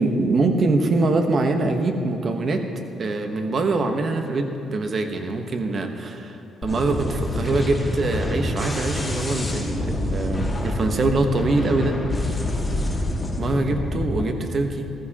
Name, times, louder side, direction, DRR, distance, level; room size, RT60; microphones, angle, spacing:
voice 1, 0.0-2.7 3.0-12.0 13.4-14.9, right 2 dB, 50° right, 5 dB, 1.1 m, -23 dB
sound 1, 6.6-14.2, left 1 dB, 20° left, 1.9 m, -26 dB
14.5 x 14.5 x 2.9 m, 2.8 s
cardioid pair, 90°, 0 cm